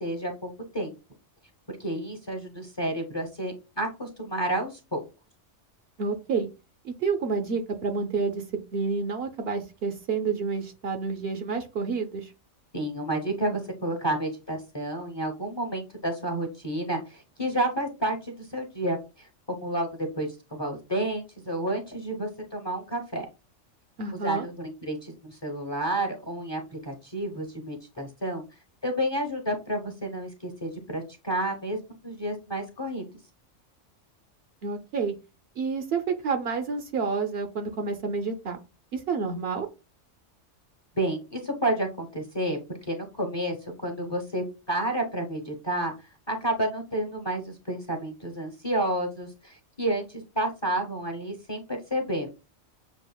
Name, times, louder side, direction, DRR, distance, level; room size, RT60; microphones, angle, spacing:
voice 1, 0.0-0.9 1.8-5.1 12.7-19.0 19.5-23.3 24.2-28.4 28.8-31.8 32.0-33.0 41.0-42.6 42.8-43.6 43.8-45.9 46.3-52.3, right 1 dB, 25° left, 4 dB, 0.8 m, -30 dB
voice 2, 6.0-6.5 6.8-8.4 8.7-12.3 24.0-24.5 34.6-35.1 35.6-38.6 38.9-39.7, right 5 dB, 60° right, 6 dB, 0.8 m, -29 dB
6.9 x 2.4 x 2.2 m, 0.28 s
omnidirectional pair, 1.2 m